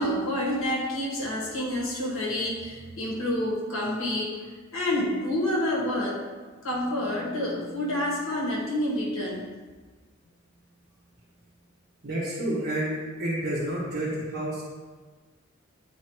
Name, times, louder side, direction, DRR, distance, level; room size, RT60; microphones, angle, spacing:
voice 1, 0.0-6.3 6.6-9.5, left 1 dB, 85° left, -4 dB, 1.7 m, -28 dB
voice 2, 12.0-14.6, right 1 dB, 50° right, -10 dB, 1.6 m, -29 dB
9.8 x 4.2 x 3.2 m, 1.4 s
head